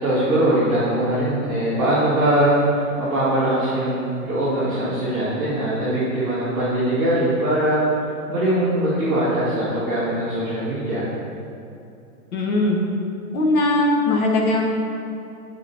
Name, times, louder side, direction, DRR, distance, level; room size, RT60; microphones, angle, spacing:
voice 1, 0.0-7.8 8.3-11.1, right 1 dB, 5° right, -18 dB, 0.3 m, -21 dB
voice 2, 12.3-12.8 13.3-14.6, left 2 dB, 75° left, 0 dB, 1.6 m, -19 dB
8.0 x 4.7 x 4.2 m, 2.7 s
hypercardioid pair, 150°, 44 cm